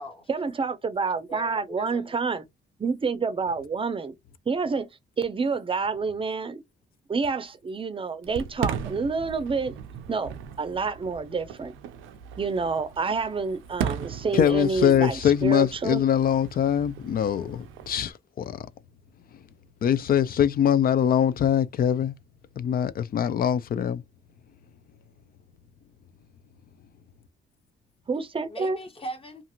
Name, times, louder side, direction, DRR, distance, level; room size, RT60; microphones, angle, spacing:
voice 1, 0.3-2.4 2.8-4.1 4.5-4.9 5.2-6.6 7.1-9.7 10.1-11.7 12.4-16.0 28.1-28.8, right 4 dB, 25° right, 0.6 m, -28 dB
voice 2, 1.3-2.2 28.5-29.4, equal, 25° left, 1.3 m, -39 dB
Fireworks, 8.2-18.1, right 8 dB, 90° right, 0.5 m, -37 dB
voice 3, 14.3-18.7 19.8-22.1 22.6-24.0, left 9 dB, 50° left, 0.4 m, -23 dB
2.5 x 2.5 x 2.9 m
cardioid pair, 90°, 20 cm